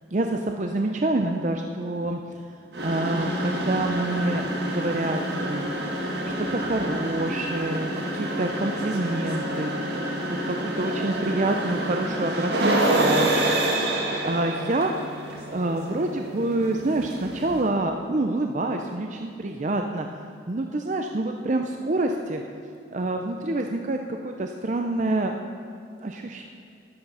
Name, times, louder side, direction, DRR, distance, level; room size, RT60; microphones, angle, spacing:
voice 1, 0.1-2.4 2.8-4.4 4.7-5.7 6.3-13.3 14.2-14.9 15.5-20.1 20.5-22.4 22.9-25.4 26.0-26.5, right 2 dB, 40° right, 4 dB, 0.5 m, -27 dB
sound 1, 2.7-17.7, right 1 dB, 65° right, 1.9 m, -28 dB
12.5 x 10.5 x 5.6 m, 2.7 s
head